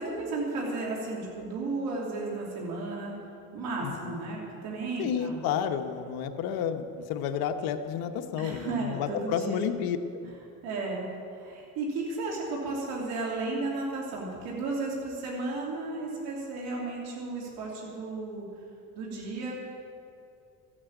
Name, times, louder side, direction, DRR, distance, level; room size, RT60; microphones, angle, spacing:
voice 1, 0.0-3.1 3.5-5.4 8.4-9.6 10.6-18.5 18.9-19.5, right 3 dB, 85° right, -3 dB, 3.0 m, -34 dB
voice 2, 3.8-4.2 5.0-10.3, left 8 dB, 80° left, 7 dB, 1.1 m, -31 dB
14.0 x 8.7 x 8.7 m, 2.5 s
cardioid pair, 110°, 36 cm